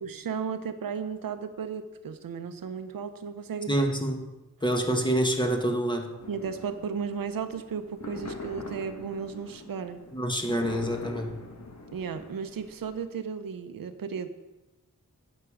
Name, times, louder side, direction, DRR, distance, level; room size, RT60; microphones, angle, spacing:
voice 1, 0.0-3.8 6.3-10.0 11.9-14.3, right 6 dB, 80° right, 9 dB, 0.9 m, -34 dB
voice 2, 3.7-4.2 4.6-6.1 10.1-11.4, right 1 dB, 15° left, 2 dB, 1.7 m, -27 dB
sound 1, 6.2-13.0, left 2 dB, 55° left, 1.7 m, -43 dB
10.5 x 7.6 x 5.1 m, 1.1 s
cardioid pair, 75°, 33 cm